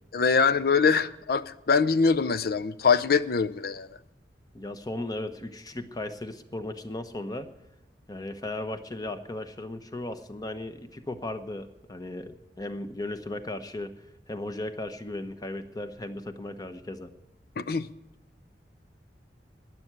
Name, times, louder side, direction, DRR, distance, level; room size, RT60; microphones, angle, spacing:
voice 1, 0.1-3.9 17.6-17.9, left 5 dB, 60° left, 0.6 m, -23 dB
voice 2, 4.5-7.5 8.1-13.9 14.3-17.1, left 1 dB, 20° left, 0.9 m, -36 dB
12.5 x 10.0 x 9.4 m
head